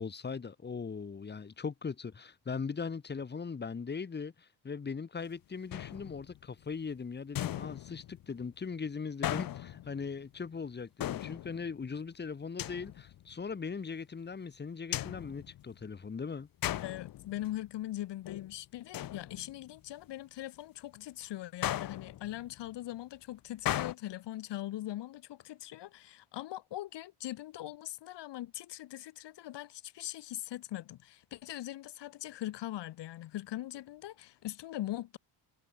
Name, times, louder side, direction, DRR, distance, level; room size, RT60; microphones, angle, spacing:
voice 1, 0.0-16.5, left 5 dB, 25° left, 3.0 m, -39 dB
sound 1, 5.7-6.5 7.4-8.4 9.2-10.2 11.0-11.9 12.6-13.3 14.9-16.1 16.6-17.7 18.0-18.5 18.9-19.8 21.6-22.6 23.7-23.9, left 13 dB, 50° left, 1.0 m, -37 dB
voice 2, 16.8-35.2, left 14 dB, 70° left, 2.0 m, -41 dB
cardioid pair, 160°, 43 cm